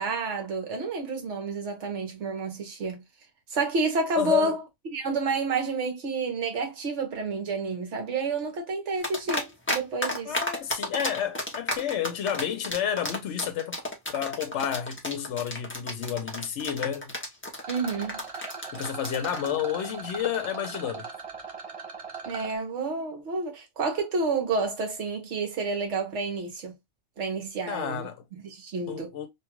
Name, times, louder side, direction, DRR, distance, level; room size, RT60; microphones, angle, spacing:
voice 1, 0.0-3.0 3.5-4.6 4.9-10.4 17.7-18.2 22.2-26.7 27.2-29.1, right 4 dB, 65° right, 1.3 m, -30 dB
voice 2, 4.2-4.6 10.3-13.8 14.1-17.1 18.7-21.1 27.7-28.2 28.9-29.3, left 9 dB, 65° left, 0.9 m, -30 dB
sound 1, 9.0-9.8 10.0-19.5, left 1 dB, 15° left, 0.6 m, -31 dB
Rattle, 17.6-22.6, right 4 dB, 40° right, 0.5 m, -40 dB
2.9 x 2.3 x 2.9 m
omnidirectional pair, 1.3 m